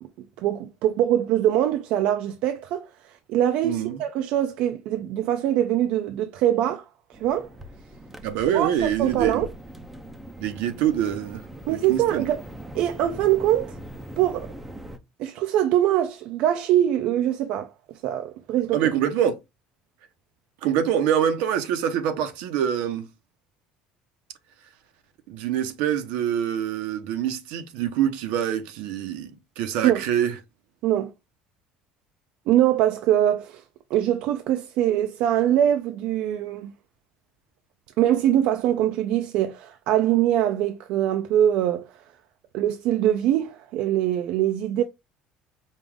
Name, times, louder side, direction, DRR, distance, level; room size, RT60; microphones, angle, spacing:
voice 1, 0.4-2.9 3.3-6.9 7.2-7.5 8.5-9.5 11.7-12.4 12.7-13.8 14.2-14.5 15.2-17.7 18.0-18.8 29.8-30.0 30.8-31.1 32.5-33.6 33.9-36.7 38.0-41.9 42.5-44.8, right 11 dB, 60° right, 0.5 m, -23 dB
voice 2, 3.6-4.0 8.2-9.4 10.4-11.4 11.7-12.2 18.7-19.4 20.6-23.1 25.3-30.3, right 9 dB, 80° right, 0.9 m, -25 dB
sound 1, 7.1-15.0, equal, 5° right, 0.5 m, -41 dB
5.2 x 2.4 x 3.5 m
cardioid pair, 160°, 2 cm